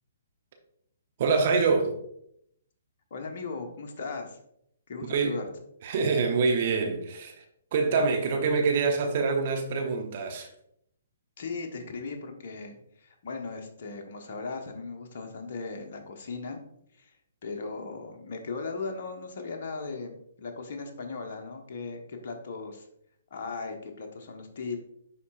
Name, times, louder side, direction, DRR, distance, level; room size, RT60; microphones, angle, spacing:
voice 1, 1.2-2.0 5.1-5.4 5.8-7.4 7.7-10.5, right 4 dB, 45° right, 0.9 m, -25 dB
voice 2, 3.1-4.4 4.9-5.5 11.4-16.6 16.9-17.1 17.4-22.9 23.3-24.8, left 4 dB, 50° left, 1.2 m, -37 dB
10.0 x 4.1 x 2.5 m
figure-of-eight pair, 125°, 0 cm